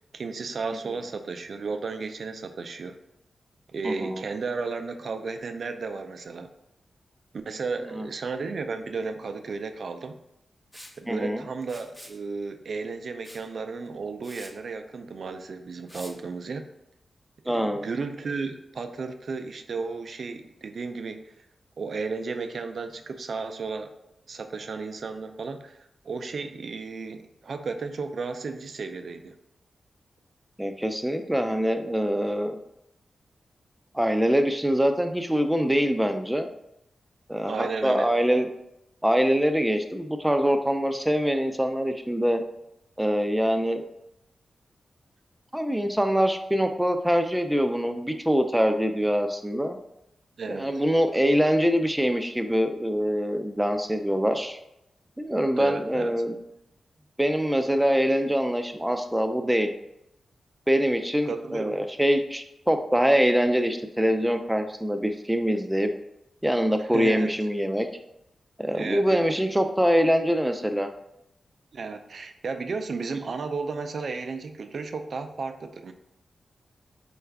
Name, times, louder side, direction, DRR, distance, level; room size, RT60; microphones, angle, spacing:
voice 1, 0.1-3.0 3.7-6.5 7.5-10.2 11.0-16.7 17.4-21.3 21.8-23.9 24.3-29.4 37.5-38.1 50.4-50.8 55.6-56.2 61.3-61.8 66.9-67.3 68.7-69.3 71.7-75.9, right 4 dB, 70° right, 7 dB, 0.3 m, -33 dB
voice 2, 3.8-4.2 8.0-8.1 11.1-11.4 17.5-17.8 30.6-32.6 33.9-36.5 37.3-38.5 39.0-42.4 43.0-43.8 45.5-49.8 50.5-54.6 55.2-56.4 57.2-59.7 60.7-65.9 66.4-67.9 68.6-70.9, equal, 5° right, 6 dB, 0.4 m, -24 dB
Liquid, 10.7-11.0 11.6-12.2 13.2-13.5 13.9-14.0 14.2-14.5 15.9-16.1, left 1 dB, 20° left, 0.8 m, -45 dB
4.4 x 2.3 x 3.3 m, 0.83 s
cardioid pair, 45°, 0 cm